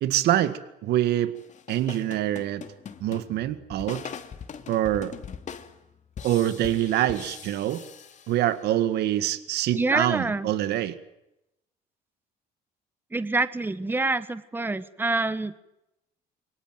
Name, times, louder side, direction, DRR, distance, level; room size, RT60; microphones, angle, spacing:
voice 1, 0.0-1.3 1.7-2.6 3.0-4.0 4.7-5.1 6.2-7.8 8.3-11.0, right 12 dB, 75° right, 12 dB, 1.9 m, -25 dB
sound 1, 1.3-8.8, left 7 dB, 45° left, 2.7 m, -42 dB
voice 2, 9.7-10.5 13.1-15.5, right 3 dB, 10° right, 14 dB, 1.4 m, -26 dB
28.0 x 24.5 x 7.9 m, 0.88 s
cardioid pair, 110°, 17 cm